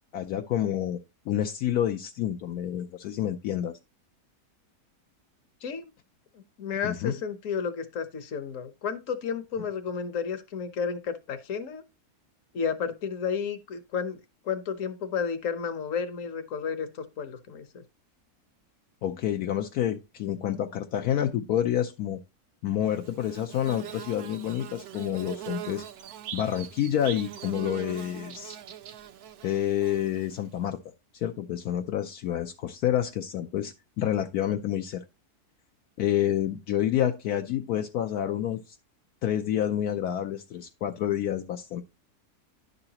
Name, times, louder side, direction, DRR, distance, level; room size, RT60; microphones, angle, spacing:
voice 1, 0.1-1.0 1.3-3.8 6.8-7.2 19.0-22.2 22.6-25.8 26.3-28.6 29.4-30.8 31.1-35.0 36.0-38.8 39.2-41.8, left 11 dB, 75° left, 1.2 m, -28 dB
voice 2, 5.6-5.9 6.3-11.8 12.5-17.8, left 6 dB, 60° left, 1.3 m, -32 dB
Bird / Buzz, 22.9-30.6, right 11 dB, 75° right, 1.3 m, -42 dB
10.5 x 6.8 x 2.9 m
omnidirectional pair, 1.6 m